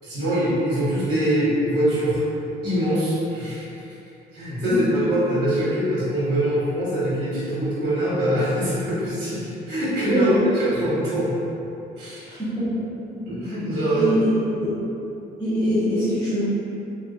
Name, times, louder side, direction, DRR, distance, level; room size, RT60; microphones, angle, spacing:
voice 1, 0.0-2.2 2.6-3.7 4.3-11.3 12.0-12.3 13.1-14.1, equal, 80° right, -10 dB, 1.2 m, -23 dB
voice 2, 10.1-10.4 12.3-12.6 13.9-14.3 14.5-14.7 15.4-16.4, equal, 15° left, -16 dB, 1.3 m, -23 dB
4.0 x 2.4 x 2.7 m, 2.9 s
cardioid pair, 110°, 17 cm